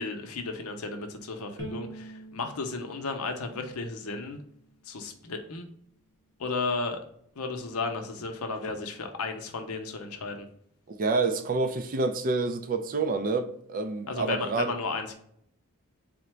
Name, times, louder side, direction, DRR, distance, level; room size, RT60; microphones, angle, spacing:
voice 1, 0.0-4.4 4.8-5.7 6.4-7.0 7.4-10.5 14.1-15.1, left 3 dB, 70° left, 0.7 m, -34 dB
Bowed string instrument, 1.6-4.8, right 1 dB, 55° right, 0.8 m, -45 dB
voice 2, 10.9-14.7, right 3 dB, 40° right, 0.4 m, -28 dB
3.8 x 2.1 x 4.4 m
head